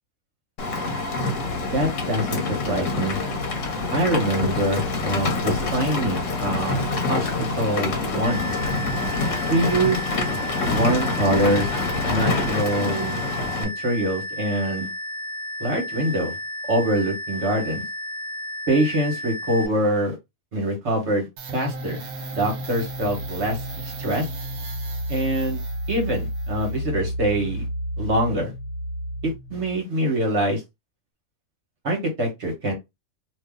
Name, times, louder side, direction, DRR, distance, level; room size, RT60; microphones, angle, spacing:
Rain, 0.6-13.6, left 3 dB, 65° left, 1.1 m, -26 dB
voice 1, 1.7-3.2 3.9-8.4 9.5-10.0 10.7-11.7 12.1-13.2 13.6-14.9 15.6-16.4 16.7-17.8 18.7-20.1 20.5-22.0 22.3-24.3 25.1-25.6 25.9-27.7 28.0-28.5 29.2-30.6 31.8-32.7, right 1 dB, 55° right, 1.5 m, -24 dB
sound 1, 8.2-19.7, left 1 dB, 15° left, 1.0 m, -33 dB
sound 2, 21.4-29.8, right 1 dB, 75° right, 1.2 m, -31 dB
2.8 x 2.6 x 3.6 m
omnidirectional pair, 1.5 m